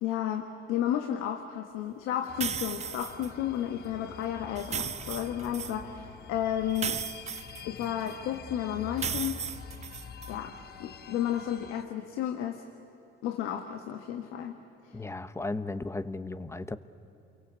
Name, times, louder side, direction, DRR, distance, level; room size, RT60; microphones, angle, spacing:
voice 1, 0.0-7.0 7.6-9.4 10.3-12.6 13.2-14.6 14.8-15.0, left 10 dB, 90° left, 6 dB, 1.4 m, -32 dB
sound 1, 2.3-11.8, left 6 dB, 50° left, 1.3 m, -46 dB
sound 2, 2.4-3.3 4.6-5.8 6.8-8.1 9.0-10.3, right 7 dB, 30° right, 0.6 m, -35 dB
voice 2, 14.9-16.8, left 2 dB, 15° left, 13 dB, 0.9 m, -35 dB
28.5 x 23.0 x 8.3 m, 3.0 s
cardioid pair, 110°, 21 cm